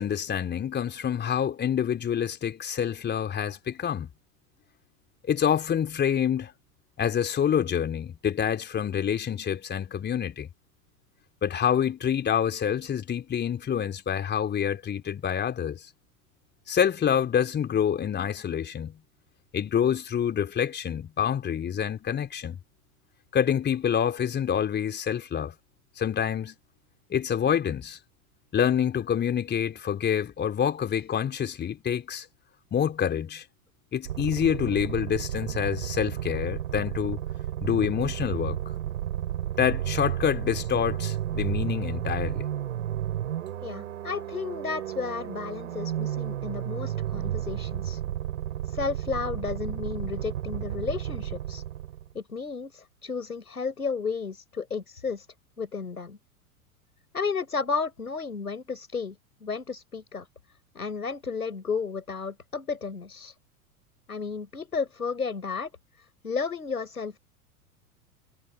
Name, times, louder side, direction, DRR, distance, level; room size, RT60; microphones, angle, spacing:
voice 1, 0.0-4.1 5.3-6.5 7.0-10.5 11.4-15.9 16.7-19.0 19.5-22.6 23.3-25.5 26.0-26.5 27.1-28.0 28.5-32.3 32.7-33.4 33.9-37.2 37.6-38.6 39.6-42.4, left 8 dB, 25° left, 4.0 m, -27 dB
sound 1, 34.1-52.1, right 11 dB, 60° right, 6.6 m, -32 dB
voice 2, 43.6-48.0 48.6-51.6 52.1-55.3 55.6-56.2 57.1-60.3 60.7-63.3 64.1-65.7 66.0-67.2, left 5 dB, 80° left, 5.9 m, -33 dB
figure-of-eight pair, 90°, 44 cm